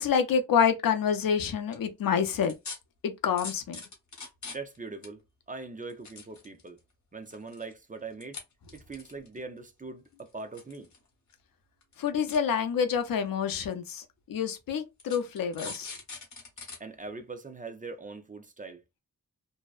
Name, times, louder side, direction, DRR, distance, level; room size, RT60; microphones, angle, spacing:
voice 1, 0.0-2.5 3.0-3.8 12.0-15.9, left 7 dB, 75° left, 0.5 m, -27 dB
sound 1, 1.7-1.8 2.4-2.8 3.4-4.8 5.0-5.1 5.8-6.8 7.3-7.7 8.2-8.4 8.7-9.4 10.2-11.0 11.3-11.4 11.8-11.9 12.3-12.4 13.2-13.3 14.0-14.1 15.0-16.8 17.2-17.3, left 4 dB, 55° left, 1.0 m, -41 dB
voice 2, 4.5-5.2 5.5-6.8 7.1-8.4 8.7-10.9 16.8-19.0, right 3 dB, 25° right, 0.4 m, -41 dB
2.6 x 2.0 x 2.3 m
wide cardioid pair, 90°, 34 cm